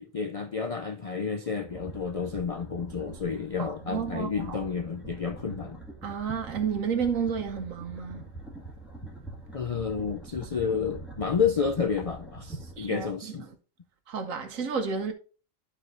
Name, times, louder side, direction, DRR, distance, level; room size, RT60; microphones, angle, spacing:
voice 1, 0.0-5.8 9.5-13.5, left 6 dB, 65° left, 0.3 m, -30 dB
sound 1, 1.5-13.1, right 2 dB, ahead, 1.9 m, -44 dB
voice 2, 3.6-4.3 6.0-8.2 12.8-13.1 14.1-15.1, right 6 dB, 85° right, 1.3 m, -31 dB
13.0 x 4.5 x 2.6 m
omnidirectional pair, 1.4 m